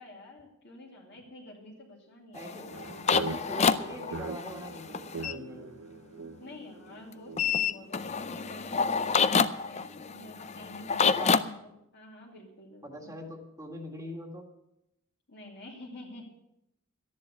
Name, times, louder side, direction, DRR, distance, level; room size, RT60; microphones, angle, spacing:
voice 1, 0.0-2.7 6.4-13.2 15.3-16.3, left 1 dB, 50° left, -2 dB, 2.7 m, -49 dB
voice 2, 2.3-2.7 3.3-5.8 11.0-11.4 12.8-14.5, equal, 15° right, 2 dB, 1.9 m, -42 dB
sound 1, 2.4-5.3 7.4-11.4, left 6 dB, 30° left, 0.5 m, -28 dB
sound 2, 2.7-8.2, right 4 dB, 85° right, 0.7 m, -42 dB
13.5 x 10.5 x 6.7 m, 0.84 s
head